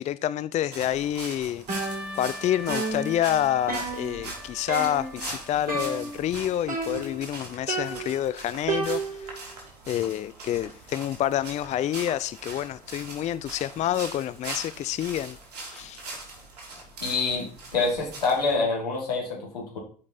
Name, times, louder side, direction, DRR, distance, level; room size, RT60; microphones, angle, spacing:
voice 1, 0.0-1.7 2.2-9.4 9.9-15.4 15.7-16.0, left 11 dB, 35° left, 0.4 m, -28 dB
sound 1, 0.7-18.5, right 2 dB, 75° right, 2.7 m, -42 dB
Trumpet, 1.7-6.1, left 1 dB, 5° right, 2.7 m, -43 dB
sound 2, 1.7-2.4 2.7-4.4 4.7-5.2 5.7-6.3 6.7-7.3 7.7-9.4, right 3 dB, 45° right, 4.8 m, -32 dB
voice 2, 17.0-17.5 17.7-19.8, left 4 dB, 80° left, 2.9 m, -26 dB
12.0 x 5.3 x 4.1 m
figure-of-eight pair, 60°, 20 cm